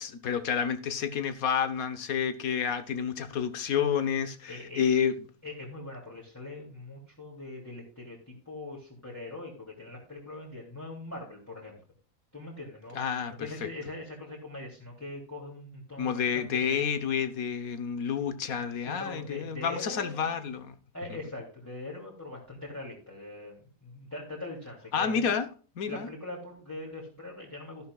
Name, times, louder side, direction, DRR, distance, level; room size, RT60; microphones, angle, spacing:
voice 1, 0.0-5.1 12.9-13.3 13.6-13.7 16.0-20.8 24.9-25.5 25.8-26.1, left 7 dB, 75° left, 1.5 m, -29 dB
voice 2, 4.5-5.0 5.4-11.8 12.3-17.0 18.9-20.3 20.9-25.4 25.9-27.9, left 2 dB, 10° left, 2.9 m, -42 dB
13.0 x 11.5 x 2.4 m
omnidirectional pair, 1.5 m